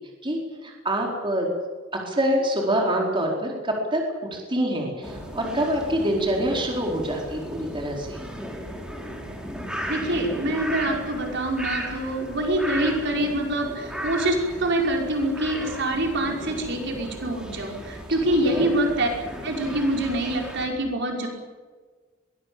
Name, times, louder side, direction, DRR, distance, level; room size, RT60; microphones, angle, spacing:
voice 1, 0.2-1.5 2.0-4.0 4.3-8.2 18.4-18.7, right 1 dB, 25° right, 0 dB, 4.5 m, -26 dB
sound 1, 5.0-20.7, equal, 5° right, 4.4 m, -36 dB
voice 2, 9.9-19.1 19.4-21.3, right 1 dB, 60° right, 1 dB, 5.3 m, -25 dB
23.0 x 20.0 x 8.7 m, 1.4 s
head